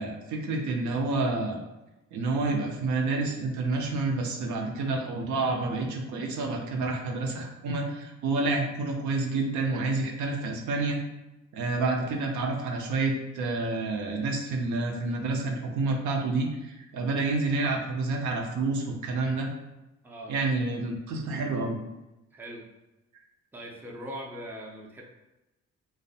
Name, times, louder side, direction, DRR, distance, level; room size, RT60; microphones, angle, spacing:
voice 1, 0.0-1.6 2.1-11.0 11.5-19.5 20.3-21.8, right 3 dB, 75° right, 1 dB, 0.5 m, -29 dB
voice 2, 20.0-20.3 22.3-22.7 23.5-25.0, equal, 5° right, -2 dB, 0.4 m, -41 dB
2.5 x 2.0 x 2.6 m, 1.0 s
cardioid pair, 90°, 30 cm